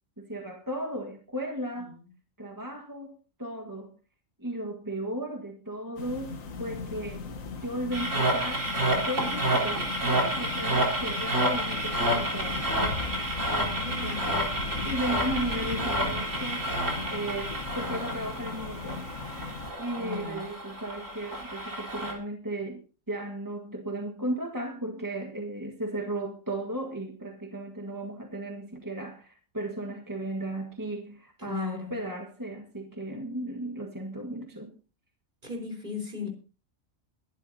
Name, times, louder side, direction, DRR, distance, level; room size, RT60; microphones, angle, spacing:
voice 1, 0.2-2.0 2.4-4.0 4.4-7.3 7.6-8.7 9.0-12.9 13.9-14.4 14.8-19.1 19.8-34.7, right 1 dB, 15° right, 1.6 m, -35 dB
sound 1, 6.0-19.7, left 4 dB, 85° left, 1.6 m, -37 dB
sound 2, 7.9-22.1, right 1 dB, 70° right, 4.4 m, -30 dB
voice 2, 13.7-14.5 20.0-20.4 31.4-32.0 35.4-36.3, left 5 dB, 40° right, 4.4 m, -37 dB
22.5 x 11.5 x 2.8 m
omnidirectional pair, 1.3 m